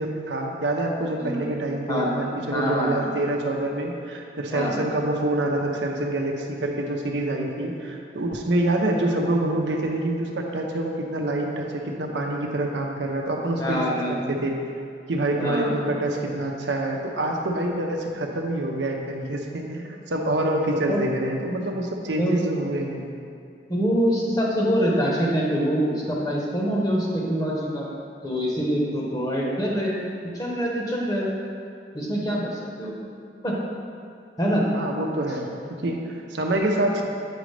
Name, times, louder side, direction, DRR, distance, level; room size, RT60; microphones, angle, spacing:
voice 1, 0.0-13.8 14.1-14.6 15.1-23.1 34.7-37.0, right 1 dB, 85° right, 1 dB, 0.8 m, -26 dB
voice 2, 2.5-3.1 4.5-4.7 7.8-7.9 13.6-14.2 15.4-15.7 20.9-21.0 22.2-22.4 23.7-27.9 28.2-31.3 31.9-33.1 33.4-33.6 34.4-34.6, equal, 20° left, -4 dB, 1.0 m, -25 dB
8.1 x 5.1 x 3.3 m, 2.5 s
head